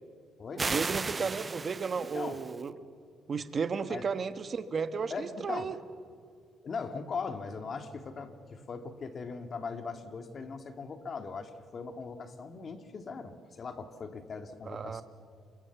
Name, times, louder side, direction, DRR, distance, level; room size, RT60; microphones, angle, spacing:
sound 1, 0.6-2.6, right 4 dB, 30° right, 0.6 m, -35 dB
voice 1, 0.6-2.7 3.3-5.7 14.6-15.0, right 5 dB, 45° right, 11 dB, 1.4 m, -34 dB
voice 2, 2.0-2.4 3.9-4.1 5.1-5.7 6.6-15.0, left 5 dB, 45° left, 8 dB, 2.3 m, -40 dB
28.0 x 24.0 x 7.1 m, 2.2 s
cardioid pair, 90°, 0 cm